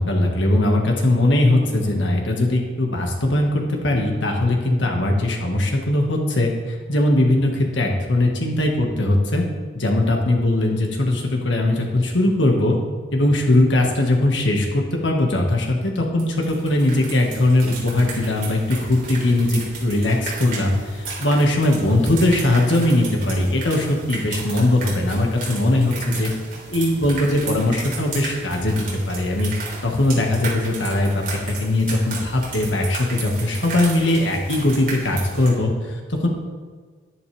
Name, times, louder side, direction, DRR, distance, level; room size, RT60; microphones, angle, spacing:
voice 1, 0.0-9.5 9.7-12.8 13.1-26.3 26.7-29.5 29.8-36.3, left 1 dB, 85° left, 1 dB, 1.7 m, -20 dB
sound 1, 16.2-35.5, right 3 dB, 50° right, 3.4 m, -34 dB
10.5 x 10.5 x 3.4 m, 1.5 s
head